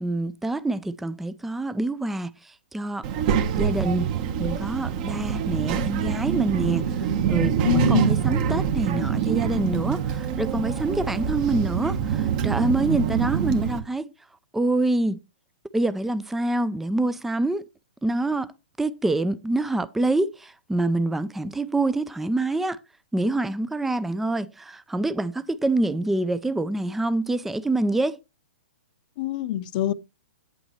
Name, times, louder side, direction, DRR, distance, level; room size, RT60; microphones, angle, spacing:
voice 1, 0.0-3.1 3.6-4.1 4.4-14.1 14.5-15.2 15.7-17.6 18.0-18.5 18.8-22.8 23.1-28.2, right 2 dB, 5° right, 0.4 m, -26 dB
Child speech kid speaking, 3.0-13.8, right 8 dB, 45° right, 1.2 m, -25 dB
voice 2, 7.6-8.2 29.2-29.9, left 13 dB, 50° left, 0.7 m, -24 dB
8.8 x 8.4 x 3.1 m
hypercardioid pair, 125°, 6 cm